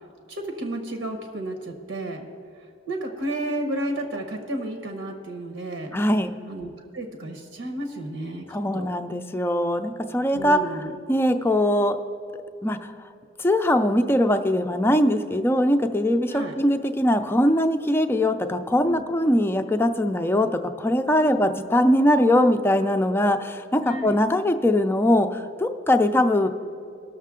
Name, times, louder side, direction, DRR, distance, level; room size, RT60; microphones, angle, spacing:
voice 1, 0.3-2.3 2.9-6.0 6.5-8.5 8.7-8.9 10.3-10.9 16.3-16.5 18.8-19.0 21.2-21.5 23.8-24.2, right 1 dB, 80° right, 4 dB, 1.1 m, -32 dB
voice 2, 5.9-6.3 8.5-12.0 12.6-12.9 13.4-26.5, left 1 dB, 10° left, 6 dB, 0.4 m, -21 dB
19.0 x 6.5 x 3.7 m, 2.6 s
head